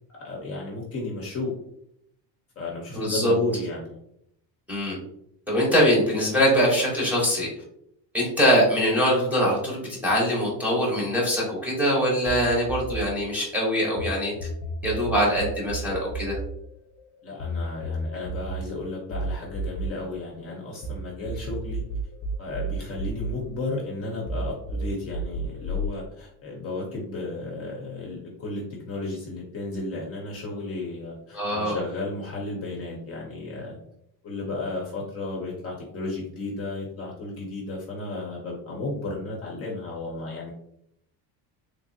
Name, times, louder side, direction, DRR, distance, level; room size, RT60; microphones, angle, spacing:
voice 1, 0.1-1.5 2.6-4.0 17.2-21.8 22.4-33.8 34.2-40.5, left 2 dB, 35° left, -2 dB, 0.7 m, -33 dB
voice 2, 2.9-3.3 4.7-5.0 5.5-7.5 8.1-14.3 14.8-16.4 31.3-31.8, equal, 5° right, -6 dB, 0.9 m, -23 dB
sound 1, 12.3-14.1 14.4-21.0 21.3-23.9 24.3-25.9, right 2 dB, 80° left, 0.6 m, -32 dB
3.2 x 2.5 x 2.6 m, 0.75 s
cardioid pair, 150°, 41 cm